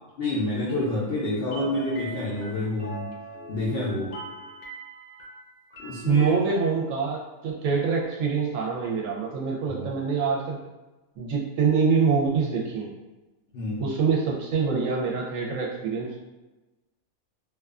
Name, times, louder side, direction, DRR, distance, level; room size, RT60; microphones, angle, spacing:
voice 1, 0.2-3.1 3.5-4.1 5.8-6.3 9.7-9.9 13.5-13.9, left 1 dB, 60° left, -7 dB, 0.7 m, -28 dB
sound 1, 0.7-6.7, left 1 dB, 75° left, 1.1 m, -41 dB
voice 2, 6.0-10.6 11.2-12.9 13.8-16.2, right 5 dB, 70° right, -2 dB, 0.9 m, -25 dB
2.5 x 2.3 x 2.3 m, 1.1 s
omnidirectional pair, 1.5 m